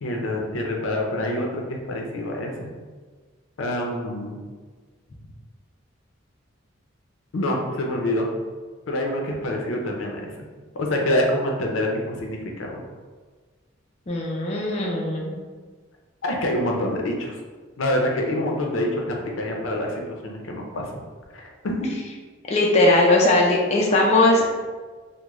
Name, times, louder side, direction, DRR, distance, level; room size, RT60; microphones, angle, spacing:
voice 1, 0.0-2.7 3.6-4.4 7.3-8.3 8.9-10.3 10.7-12.8 16.2-17.4 17.8-20.9 21.3-21.7, left 1 dB, 80° left, 0 dB, 0.5 m, -26 dB
voice 2, 14.1-15.4 22.5-24.5, left 2 dB, 30° left, -2 dB, 0.4 m, -19 dB
3.5 x 2.1 x 3.0 m, 1.4 s
head